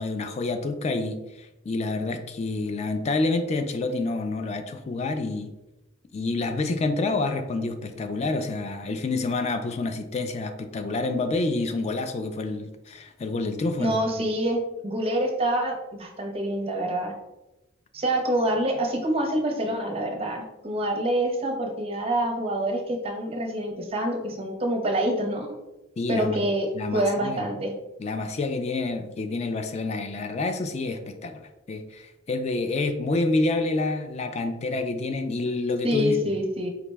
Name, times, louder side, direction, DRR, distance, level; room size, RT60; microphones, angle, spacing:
voice 1, 0.0-5.5 6.1-14.0 26.0-26.4 26.7-27.5 28.0-31.4 31.7-36.4, left 3 dB, 30° left, 8 dB, 0.3 m, -28 dB
voice 2, 13.8-17.1 17.9-25.5 26.1-27.7 35.8-36.7, right 1 dB, 30° right, 2 dB, 0.6 m, -26 dB
4.8 x 2.1 x 3.3 m, 0.97 s
head